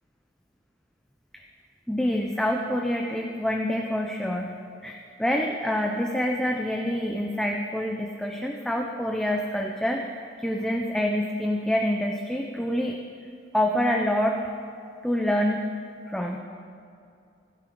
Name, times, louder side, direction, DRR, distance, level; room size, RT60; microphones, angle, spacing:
voice 1, 1.9-4.6 4.8-13.0 13.5-14.4 15.0-15.6 16.1-16.4, left 1 dB, 5° left, 1 dB, 0.6 m, -26 dB
16.0 x 13.0 x 3.9 m, 2.5 s
head